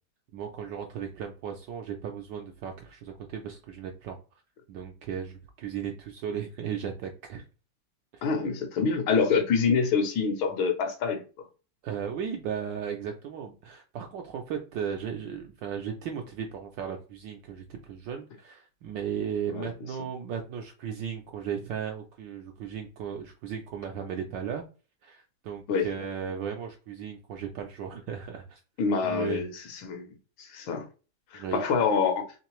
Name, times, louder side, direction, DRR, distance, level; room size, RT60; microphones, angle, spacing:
voice 1, 0.3-4.2 4.7-7.5 8.1-8.3 11.8-24.6 25.0-28.6 29.0-29.4 31.3-31.6, right 8 dB, 75° right, 1.0 m, -36 dB
voice 2, 8.2-11.2 19.5-19.7 25.7-25.9 28.8-30.1 30.4-30.9 31.3-32.3, left 5 dB, 70° left, 1.4 m, -26 dB
3.7 x 3.2 x 2.9 m
omnidirectional pair, 2.4 m